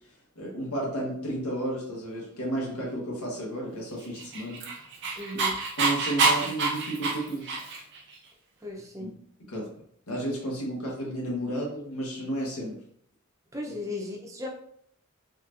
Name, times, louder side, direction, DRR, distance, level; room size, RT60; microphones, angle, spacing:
voice 1, 0.4-4.6 5.3-5.4 5.8-7.6 9.0-9.1 9.4-9.7 10.1-12.8 13.7-13.8, right 1 dB, 80° left, -3 dB, 1.3 m, -32 dB
Dog, 4.2-8.0, right 3 dB, 50° right, 0.7 m, -27 dB
voice 2, 5.2-5.6 8.6-9.1 13.5-14.5, left 2 dB, 15° right, -1 dB, 0.7 m, -36 dB
4.1 x 3.0 x 2.6 m, 0.66 s
head